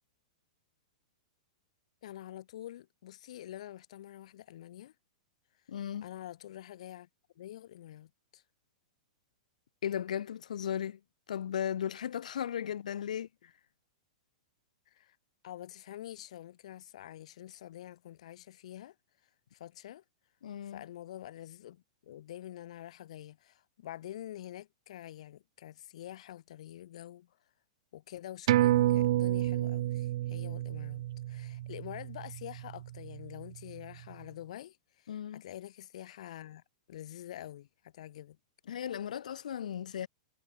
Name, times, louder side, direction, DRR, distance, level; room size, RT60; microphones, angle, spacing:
voice 1, 2.0-4.9 6.0-7.1 7.4-8.4 12.6-12.7 14.9-15.1 15.4-18.9 19.5-20.0 20.6-27.3 27.9-36.6 36.9-38.4, left 12 dB, 60° left, 3.3 m, -47 dB
voice 2, 5.7-6.1 9.8-11.0 11.3-13.3 20.4-20.8 35.1-35.4 38.7-40.1, left 9 dB, 85° left, 3.0 m, -36 dB
sound 1, 28.5-33.4 33.8-33.9, right 14 dB, 55° right, 2.0 m, -30 dB
supercardioid pair, 165°, 4 cm